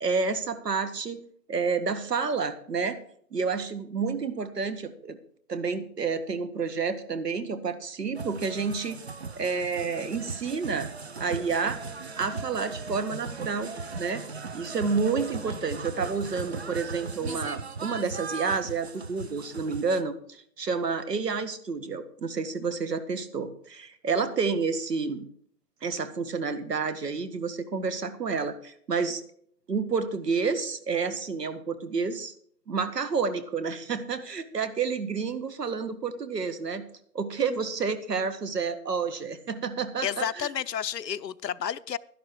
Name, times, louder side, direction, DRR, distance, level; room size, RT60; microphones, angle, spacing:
voice 1, 0.0-1.2 1.5-3.0 3.3-5.2 5.5-9.0 9.4-10.9 11.2-11.8 12.2-25.3 25.8-29.2 29.7-32.3 32.7-36.8 37.2-40.5, right 5 dB, 75° right, 1.7 m, -30 dB
sound 1, 8.1-20.0, right 4 dB, 40° right, 0.7 m, -38 dB
voice 2, 40.0-42.0, left 9 dB, 85° left, 0.7 m, -31 dB
11.5 x 11.0 x 4.6 m
hypercardioid pair, 165°, 49 cm